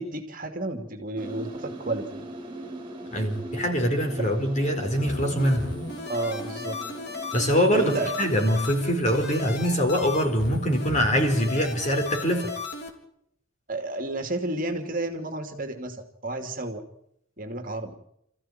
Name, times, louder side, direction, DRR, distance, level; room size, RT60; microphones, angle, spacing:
voice 1, 0.0-2.2 4.2-4.3 6.1-6.8 7.7-8.1 13.7-16.8 17.4-17.9, right 2 dB, 40° right, 5 dB, 2.6 m, -31 dB
sound 1, 1.2-10.0, right 1 dB, 25° right, 4.0 m, -41 dB
voice 2, 3.1-5.6 7.3-12.5, equal, 35° left, 4 dB, 4.8 m, -24 dB
sound 2, 5.1-12.9, left 3 dB, 50° left, 3.7 m, -36 dB
28.5 x 15.0 x 9.2 m, 0.76 s
head